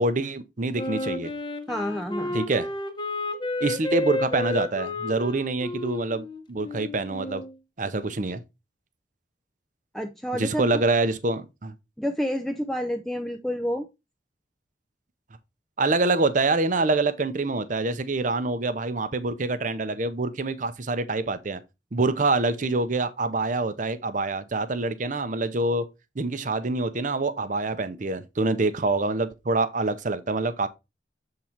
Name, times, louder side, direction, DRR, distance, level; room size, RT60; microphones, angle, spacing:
voice 1, 0.0-1.3 2.3-2.7 3.6-7.4 7.8-8.4 10.4-11.7 15.8-21.6 21.9-25.8 26.2-30.7, right 3 dB, 40° right, 0.6 m, -26 dB
Wind instrument woodwind instrument, 0.8-7.5, left 2 dB, 25° left, 0.8 m, -31 dB
voice 2, 1.7-2.4 9.9-10.8 12.0-13.9, equal, ahead, 0.4 m, -29 dB
7.2 x 3.8 x 4.4 m
head